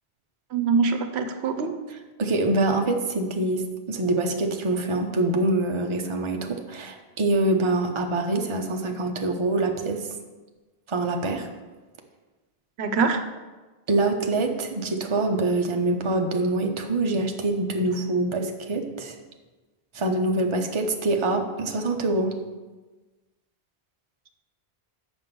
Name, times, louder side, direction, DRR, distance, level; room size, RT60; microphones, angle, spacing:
voice 1, 0.5-1.8 12.8-13.2, right 5 dB, 80° right, 8 dB, 0.9 m, -24 dB
voice 2, 2.2-10.1 10.9-11.5 13.9-19.1 19.9-22.3, right 2 dB, 30° right, 3 dB, 0.7 m, -25 dB
7.6 x 6.0 x 5.2 m, 1.2 s
omnidirectional pair, 1.1 m